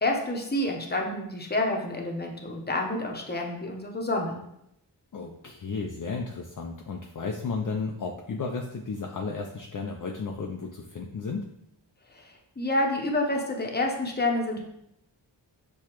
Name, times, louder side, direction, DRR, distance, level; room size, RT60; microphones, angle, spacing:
voice 1, 0.0-4.4 12.1-14.6, left 2 dB, 20° left, 1 dB, 0.8 m, -28 dB
voice 2, 5.1-11.5, left 4 dB, 45° left, 1 dB, 0.5 m, -33 dB
6.5 x 2.3 x 3.0 m, 0.80 s
wide cardioid pair, 65°, 44 cm